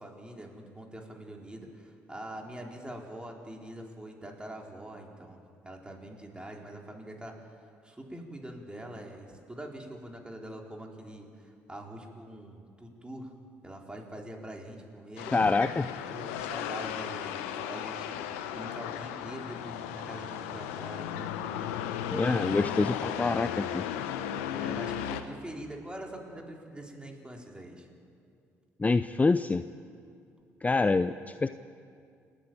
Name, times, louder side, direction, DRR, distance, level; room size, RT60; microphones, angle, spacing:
voice 1, 0.0-7.6 7.8-13.3 13.6-15.3 16.1-21.8 22.2-22.3 24.5-27.9, right 1 dB, 15° right, 1 dB, 4.1 m, -44 dB
sound 1, 15.2-25.2, left 10 dB, 75° left, 1.0 m, -35 dB
voice 2, 15.3-15.9 22.1-23.8 28.8-29.6 30.6-31.5, left 3 dB, 20° left, 12 dB, 0.6 m, -26 dB
28.5 x 10.0 x 8.9 m, 2.4 s
hypercardioid pair, 50°, 7 cm